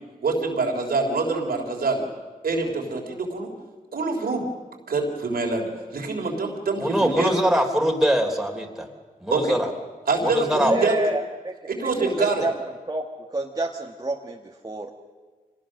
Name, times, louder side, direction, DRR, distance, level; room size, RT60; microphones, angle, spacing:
voice 1, 0.2-2.0 2.4-3.5 3.9-4.4 4.9-7.3 9.3-9.6 10.1-11.0 11.7-12.5, right 3 dB, 90° right, 1 dB, 3.5 m, -25 dB
voice 2, 6.8-8.9 9.2-9.6 10.2-10.8, equal, 5° right, 2 dB, 3.4 m, -22 dB
voice 3, 10.7-11.5 11.8-12.5 12.9-13.0 13.3-14.9, right 2 dB, 25° right, 1 dB, 1.5 m, -28 dB
25.0 x 19.0 x 6.5 m, 1.4 s
cardioid pair, 60°, 15 cm